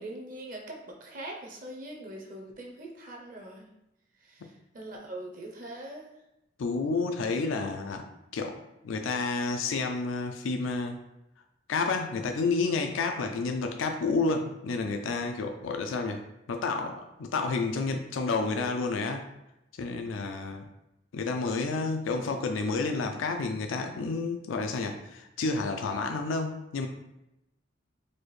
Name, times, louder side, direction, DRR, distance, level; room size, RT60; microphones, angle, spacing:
voice 1, 0.0-3.7 4.2-4.5 4.7-6.1 21.7-21.8, right 1 dB, 45° right, 1 dB, 0.6 m, -42 dB
voice 2, 6.6-8.0 8.3-8.6 8.8-11.0 11.7-16.2 16.5-19.2 19.8-20.7 21.1-26.9, left 3 dB, 90° left, 4 dB, 0.4 m, -30 dB
4.1 x 2.5 x 3.1 m, 0.89 s
head